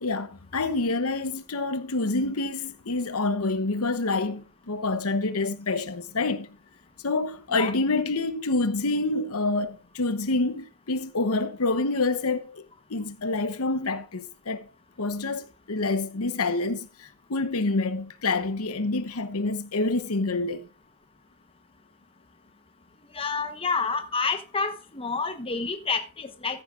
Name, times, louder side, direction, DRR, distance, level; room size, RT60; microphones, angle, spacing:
voice 1, 0.0-6.5 7.0-14.7 15.0-20.6, left 3 dB, 80° left, 1.0 m, -27 dB
voice 2, 23.1-26.6, left 4 dB, 25° left, 1.1 m, -29 dB
14.5 x 11.0 x 2.5 m
head